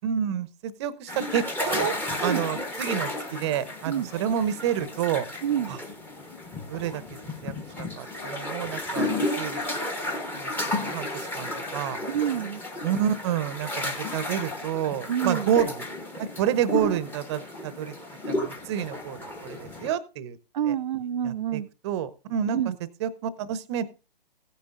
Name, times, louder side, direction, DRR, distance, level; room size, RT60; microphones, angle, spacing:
voice 1, 0.0-1.9 2.2-5.3 6.7-7.0 7.4-9.6 10.3-11.1 11.3-12.0 12.8-15.8 16.2-17.9 18.3-20.4 20.7-20.8 21.2-22.6 23.0-23.8, right 9 dB, 30° right, 17 dB, 0.9 m, -29 dB
sound 1, 1.1-19.9, left 1 dB, 5° left, 1.0 m, -33 dB
voice 2, 5.4-5.8 12.1-12.6 15.1-15.5 20.5-21.7 22.5-22.8, right 10 dB, 50° right, 8 dB, 0.4 m, -27 dB
15.5 x 9.9 x 2.5 m, 0.30 s
figure-of-eight pair, 135°, 29 cm